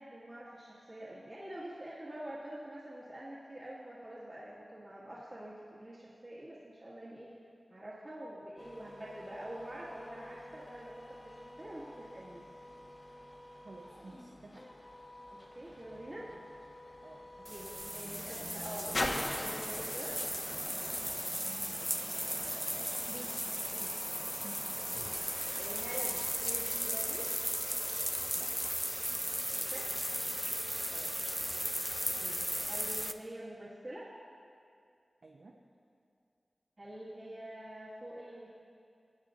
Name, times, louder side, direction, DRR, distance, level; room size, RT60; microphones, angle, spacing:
voice 1, 0.0-7.3 7.7-12.5 15.3-16.3 17.5-20.6 24.9-25.1 25.4-27.3 29.7-29.9 32.1-34.1 36.8-38.5, right 1 dB, 40° right, -8 dB, 1.6 m, -46 dB
sound 1, 8.6-26.3, left 1 dB, 35° left, 0.9 m, -51 dB
voice 2, 13.6-14.7 16.2-16.5 17.0-17.5 17.8-18.9 21.1-22.1 23.1-24.6 24.9-25.0 28.3-28.5 30.9-31.2 35.2-35.6, right 2 dB, 75° right, 0 dB, 0.7 m, -53 dB
sound 2, 15.4-21.9 22.7-22.8, left 1 dB, 65° left, 1.1 m, -42 dB
sound 3, 17.4-33.1, equal, ahead, 0.4 m, -36 dB
19.5 x 8.7 x 2.5 m, 2.4 s
wide cardioid pair, 55°, 0 cm